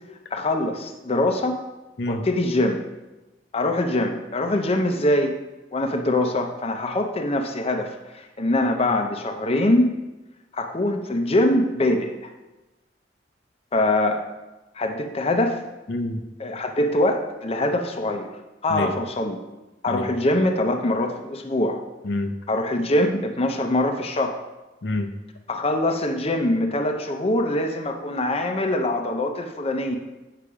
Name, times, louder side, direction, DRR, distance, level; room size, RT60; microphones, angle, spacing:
voice 1, 0.3-1.6 2.1-2.8 3.5-5.3 5.7-9.9 10.5-12.3 13.7-14.2 14.7-15.6 16.4-18.3 18.6-19.4 19.8-21.8 22.5-24.4 25.5-30.0, left 1 dB, 35° left, 4 dB, 0.7 m, -23 dB
voice 2, 15.9-16.2 18.7-18.9 19.9-20.1 22.0-22.4 24.8-25.1, left 2 dB, 70° left, 6 dB, 0.7 m, -27 dB
8.5 x 5.8 x 5.0 m, 1.1 s
head